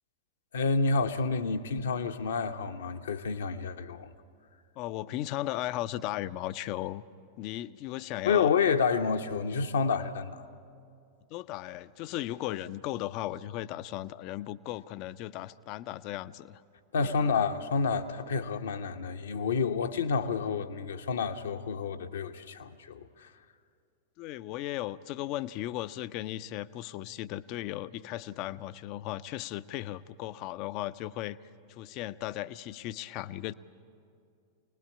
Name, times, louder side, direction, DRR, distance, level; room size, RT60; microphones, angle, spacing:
voice 1, 0.5-4.1 8.2-10.4 16.9-23.3, left 5 dB, 65° left, 0.9 m, -29 dB
voice 2, 4.8-7.0 7.4-8.5 11.3-16.6 17.1-17.3 24.2-33.5, left 14 dB, 40° left, 0.5 m, -36 dB
25.5 x 19.5 x 8.6 m
figure-of-eight pair, 90°, 0 cm